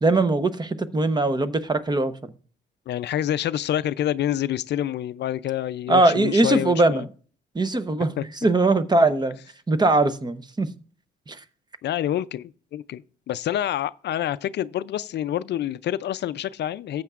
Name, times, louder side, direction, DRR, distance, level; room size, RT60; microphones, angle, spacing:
voice 1, 0.0-2.1 5.9-7.1 7.5-9.4 9.7-10.7 11.3-11.4, right 2 dB, 20° right, 0.8 m, -21 dB
voice 2, 2.9-7.1 8.2-8.3 11.8-17.0, left 11 dB, 60° left, 0.4 m, -27 dB
14.5 x 8.0 x 2.4 m
cardioid pair, 90°, 20 cm